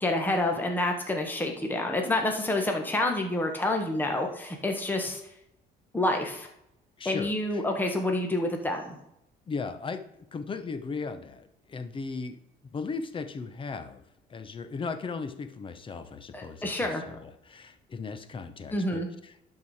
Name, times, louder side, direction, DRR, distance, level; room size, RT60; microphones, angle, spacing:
voice 1, 0.0-5.3 5.9-6.5 7.0-9.0 16.3-17.0 18.7-19.1, left 2 dB, 10° left, 2 dB, 1.4 m, -28 dB
voice 2, 7.0-7.6 9.5-10.0 10.3-12.4 12.7-14.0 14.3-19.3, left 4 dB, 30° left, 10 dB, 1.0 m, -37 dB
11.5 x 4.7 x 4.9 m, 0.81 s
cardioid pair, 110°, 17 cm